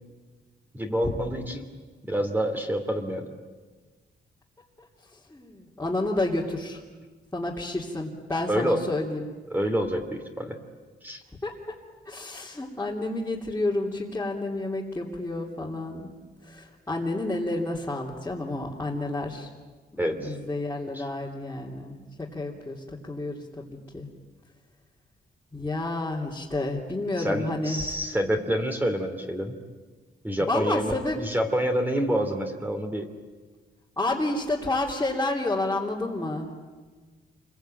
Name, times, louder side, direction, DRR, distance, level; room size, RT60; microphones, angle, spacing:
voice 1, 0.7-1.7 2.0-3.3 8.5-8.8 9.5-10.5 11.0-11.2 20.0-20.4 20.9-21.1 27.2-29.5 30.2-33.1, equal, 10° right, 4 dB, 2.7 m, -27 dB
voice 2, 5.3-6.8 7.3-9.3 11.4-11.5 12.1-16.1 16.4-19.5 19.9-22.8 23.0-24.1 25.5-27.8 30.4-31.2 34.0-36.5, left 2 dB, 15° left, -6 dB, 3.0 m, -30 dB
28.5 x 22.5 x 9.1 m, 1.4 s
wide cardioid pair, 150°, 19 cm